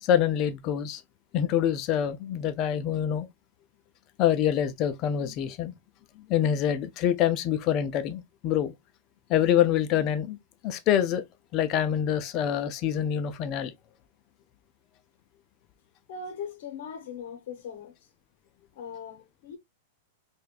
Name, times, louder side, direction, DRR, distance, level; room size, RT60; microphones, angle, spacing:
voice 1, 0.0-1.0 1.3-3.3 4.2-5.7 6.3-8.7 9.3-10.4 10.6-11.2 11.5-13.7, left 10 dB, 25° left, 0.4 m, -25 dB
voice 2, 16.1-18.0 18.7-19.6, left 6 dB, 55° left, 0.9 m, -39 dB
5.0 x 2.3 x 2.3 m
supercardioid pair, 175°, 0 cm